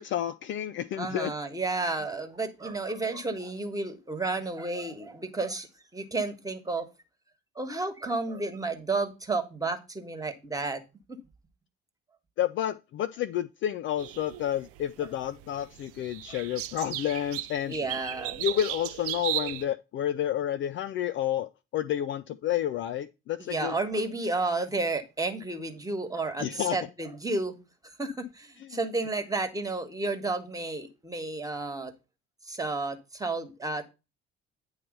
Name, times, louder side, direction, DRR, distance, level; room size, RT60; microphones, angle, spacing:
voice 1, 0.0-1.3 12.4-17.7 18.4-23.8 26.4-26.8, left 11 dB, 40° left, 0.5 m, -30 dB
voice 2, 0.9-5.7 5.9-6.9 7.6-10.8 11.1-11.2 17.7-18.4 23.4-27.6 27.8-31.9 32.5-33.9, right 3 dB, 10° right, 1.5 m, -32 dB
sound 1, 14.0-19.6, right 14 dB, 45° right, 0.6 m, -36 dB
9.5 x 3.2 x 6.6 m
figure-of-eight pair, 55°, 32 cm